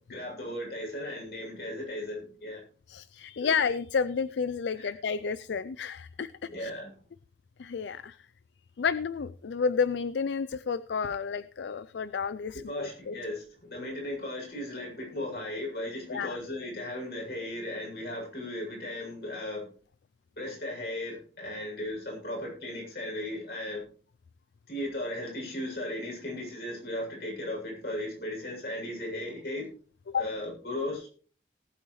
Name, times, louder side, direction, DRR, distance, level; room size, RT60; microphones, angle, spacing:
voice 1, 0.1-2.6 3.4-3.5 4.7-4.9 6.5-6.9 12.7-19.6 20.4-23.8 24.7-29.7 30.1-31.1, left 1 dB, 60° left, -2 dB, 7.3 m, -36 dB
voice 2, 2.9-6.7 7.6-8.2 8.8-13.2 16.1-16.4 30.1-30.3, left 6 dB, 85° left, 16 dB, 0.4 m, -31 dB
19.0 x 8.4 x 3.2 m, 0.42 s
head